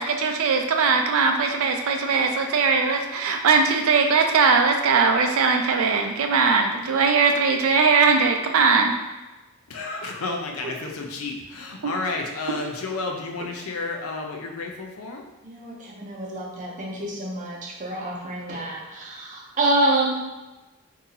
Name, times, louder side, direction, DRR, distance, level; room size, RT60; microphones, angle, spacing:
voice 1, 0.0-8.9 11.8-11.9, right 5 dB, 75° right, 3 dB, 0.4 m, -20 dB
voice 2, 9.7-15.2, left 3 dB, 75° left, 2 dB, 0.5 m, -31 dB
voice 3, 15.4-20.2, right 1 dB, 35° right, -3 dB, 0.7 m, -27 dB
2.7 x 2.7 x 3.9 m, 1.1 s
head